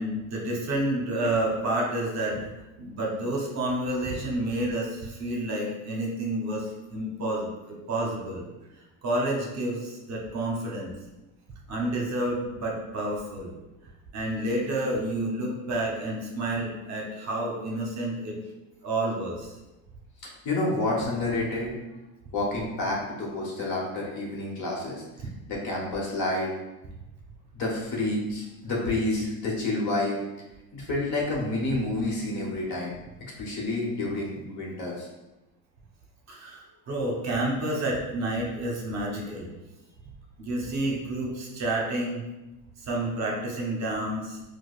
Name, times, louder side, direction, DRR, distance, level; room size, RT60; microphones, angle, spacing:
voice 1, 0.0-2.4 2.8-8.5 9.0-10.9 11.7-13.5 14.1-18.3 18.8-19.5 36.3-36.6 36.9-39.5 40.4-42.2 42.8-44.4, right 1 dB, 40° right, -1 dB, 0.8 m, -29 dB
voice 2, 20.2-21.7 22.3-25.0 25.5-26.5 27.5-30.2 30.7-33.0 33.4-35.1, left 2 dB, 45° left, -3 dB, 1.1 m, -29 dB
4.6 x 2.2 x 2.4 m, 1.0 s
supercardioid pair, 115°, 40 cm